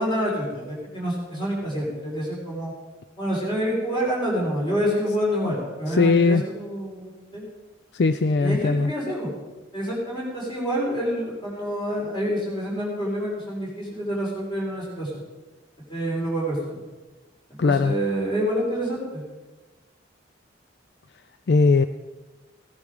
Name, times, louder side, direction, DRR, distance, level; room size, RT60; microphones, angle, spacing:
voice 1, 0.0-2.7 3.2-7.4 8.4-9.3 9.7-15.2 15.9-16.8 17.5-19.2, equal, 25° left, -5 dB, 5.2 m, -27 dB
voice 2, 5.9-6.4 7.9-8.9 17.6-18.0 21.5-21.9, left 4 dB, 60° left, 11 dB, 0.4 m, -19 dB
17.5 x 10.5 x 5.0 m, 1.2 s
head